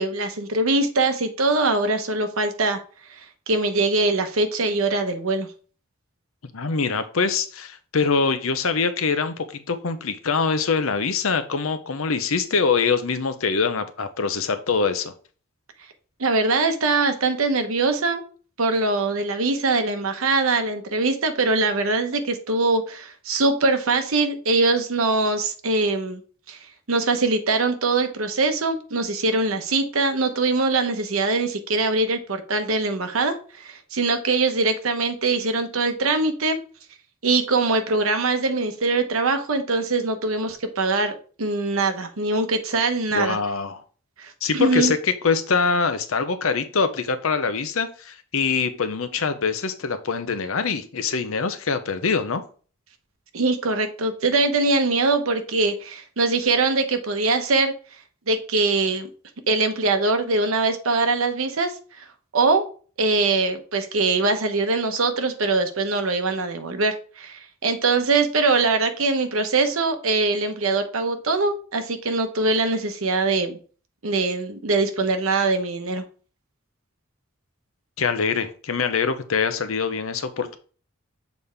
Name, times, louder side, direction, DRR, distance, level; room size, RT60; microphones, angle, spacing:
voice 1, 0.0-2.8 3.5-5.5 16.2-18.2 18.6-26.2 26.5-26.6 26.9-36.6 37.2-43.4 44.2-44.9 53.3-57.7 58.3-59.1 59.5-62.0 62.3-62.6 63.0-73.6 74.0-76.0, right 3 dB, 85° right, 7 dB, 1.0 m, -22 dB
voice 2, 6.5-15.1 43.1-43.8 44.4-52.4 78.0-80.6, left 5 dB, 75° left, 10 dB, 0.8 m, -24 dB
7.1 x 4.2 x 3.4 m, 0.39 s
head